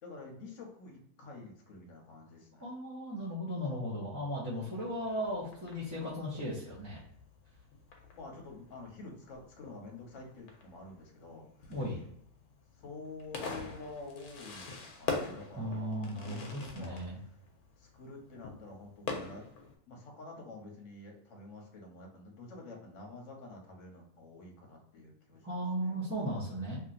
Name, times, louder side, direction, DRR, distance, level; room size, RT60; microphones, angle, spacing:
voice 1, 0.0-2.7 8.1-11.8 12.8-17.4 17.8-19.5 19.9-26.1, left 3 dB, 60° left, 0 dB, 1.1 m, -48 dB
voice 2, 2.6-7.0 11.7-12.0 15.5-17.2 25.4-26.8, equal, 15° right, -10 dB, 0.8 m, -36 dB
Fireworks, 4.7-19.7, left 4 dB, 90° left, 1.2 m, -44 dB
3.0 x 2.8 x 2.5 m, 0.70 s
omnidirectional pair, 1.6 m